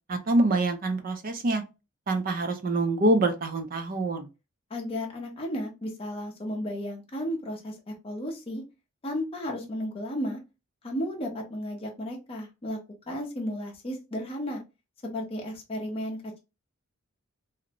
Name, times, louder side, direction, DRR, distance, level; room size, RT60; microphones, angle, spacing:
voice 1, 0.1-1.6 2.1-4.3, right 2 dB, 40° right, 0.4 m, -25 dB
voice 2, 4.7-8.6 9.0-10.4 10.8-12.8 13.1-14.6 15.0-16.4, equal, 25° left, 0.6 m, -34 dB
2.5 x 2.0 x 2.7 m
head